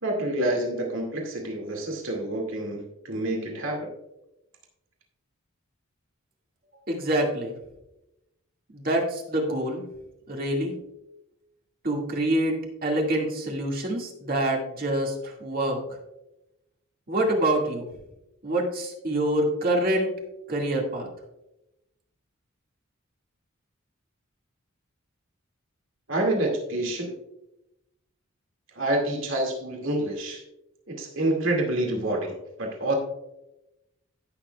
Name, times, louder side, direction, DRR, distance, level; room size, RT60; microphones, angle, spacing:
voice 1, 0.0-3.9 26.1-27.2 28.7-30.4 30.9-32.9, right 1 dB, 70° right, 1 dB, 2.2 m, -28 dB
voice 2, 6.9-7.5 8.7-9.8 10.3-10.8 11.8-15.8 17.1-17.8 18.4-20.1 20.5-21.1, right 1 dB, 45° right, -1 dB, 2.1 m, -26 dB
16.5 x 6.9 x 2.3 m, 0.90 s
head